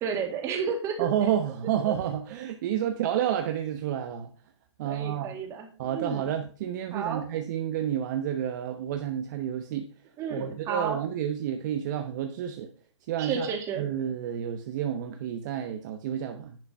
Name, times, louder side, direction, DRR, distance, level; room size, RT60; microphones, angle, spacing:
voice 1, 0.0-1.1 1.9-2.0 4.8-6.3 6.9-7.2 10.2-11.0 13.2-13.8, right 6 dB, 20° right, 3 dB, 2.2 m, -32 dB
voice 2, 1.0-4.3 4.8-5.4 5.8-9.9 10.3-12.7 13.1-13.5 13.8-16.6, right 10 dB, 40° right, 6 dB, 1.0 m, -30 dB
10.5 x 5.8 x 5.5 m, 0.41 s
hypercardioid pair, 145°, 15 cm